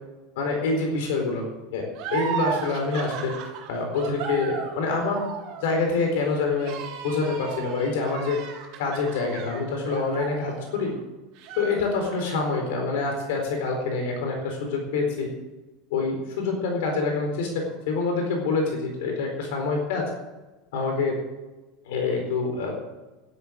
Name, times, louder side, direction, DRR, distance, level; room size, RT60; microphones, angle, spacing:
voice 1, 0.4-1.4 1.7-3.3 3.7-5.2 5.6-8.4 8.8-10.9 11.6-15.3 15.9-20.1 20.7-21.2 21.8-22.7, left 4 dB, 75° left, 2 dB, 4.2 m, -26 dB
sound 1, 1.9-11.0 11.4-12.4, right 7 dB, 45° right, 3.4 m, -35 dB
12.0 x 11.0 x 8.1 m, 1.1 s
supercardioid pair, 180°, 0 cm